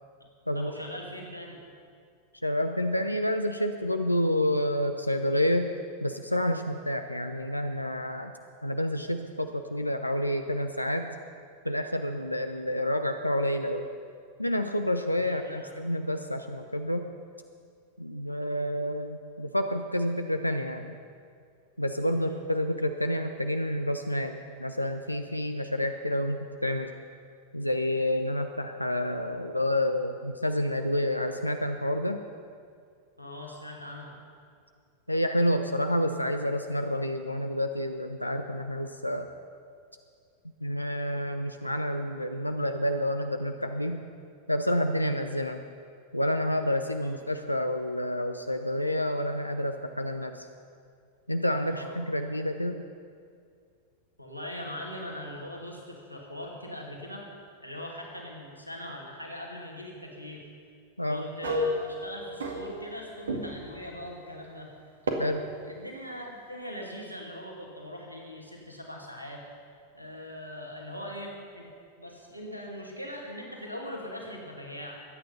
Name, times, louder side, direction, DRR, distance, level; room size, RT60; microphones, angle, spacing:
voice 1, 0.5-1.6 15.2-15.8 22.0-22.4 33.2-34.2 47.0-47.1 51.6-52.0 54.2-57.3 57.6-60.4 61.1-64.7 65.6-69.4 69.9-71.7 72.0-75.0, left 1 dB, 90° right, 0 dB, 2.5 m, -41 dB
voice 2, 2.4-5.8 6.0-8.3 8.6-11.1 11.6-13.9 14.4-17.1 18.0-21.0 21.8-26.9 27.5-32.2 35.1-39.3 40.6-44.0 44.5-45.6 46.1-50.5 51.3-52.8 61.0-61.3 65.2-65.4, left 1 dB, 85° left, 7 dB, 0.6 m, -29 dB
sound 1, 61.4-63.0 63.3-63.7 65.1-65.2, equal, 70° right, 2.1 m, -31 dB
22.5 x 9.3 x 5.6 m, 2.2 s
figure-of-eight pair, 90°, 0 cm